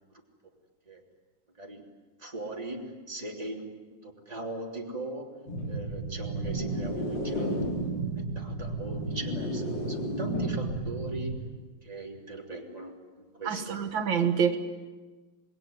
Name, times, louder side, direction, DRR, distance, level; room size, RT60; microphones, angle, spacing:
voice 1, 2.2-3.7 4.3-5.3 5.7-7.5 7.9-11.5 11.8-13.0 13.4-13.8, right 2 dB, 20° right, 0 dB, 3.3 m, -39 dB
sound 1, 5.5-11.3, right 1 dB, 75° left, 3.7 m, -32 dB
voice 2, 13.4-14.6, right 7 dB, 90° right, 8 dB, 2.2 m, -26 dB
26.5 x 21.5 x 9.5 m, 1.3 s
omnidirectional pair, 2.0 m